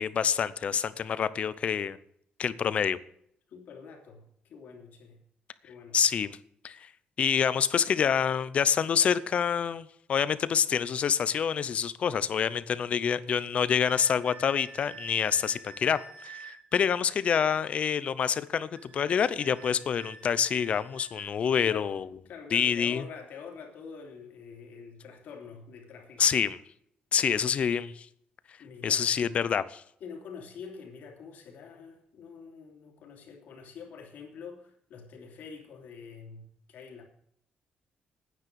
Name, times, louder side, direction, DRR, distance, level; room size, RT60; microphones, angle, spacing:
voice 1, 0.0-2.0 2.4-3.0 5.9-6.4 6.6-6.9 7.2-22.1 22.5-23.0 26.2-26.6 27.1-28.1 28.8-29.8, left 7 dB, 45° left, 0.6 m, -27 dB
voice 2, 3.5-5.2 5.6-6.0 21.6-21.9 22.2-26.3 28.6-29.2 30.0-37.0, left 5 dB, 65° left, 3.1 m, -46 dB
sound 1, 13.8-16.6 18.8-21.3, right 3 dB, 40° right, 2.1 m, -49 dB
9.9 x 9.4 x 6.9 m
cardioid pair, 155°, 3 cm